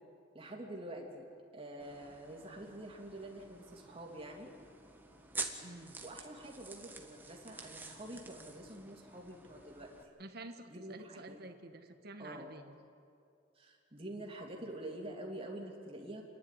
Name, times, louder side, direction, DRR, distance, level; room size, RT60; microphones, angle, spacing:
voice 1, 0.3-1.3 1.5-4.5 6.0-10.0 10.7-11.4 12.2-12.5 13.5-16.2, right 1 dB, 30° right, 0 dB, 3.0 m, -47 dB
sound 1, 1.8-10.0, right 3 dB, 10° right, 1.5 m, -48 dB
voice 2, 5.6-6.0 10.2-12.7, right 2 dB, 55° right, 5 dB, 1.5 m, -50 dB
28.5 x 11.0 x 9.9 m, 2.5 s
head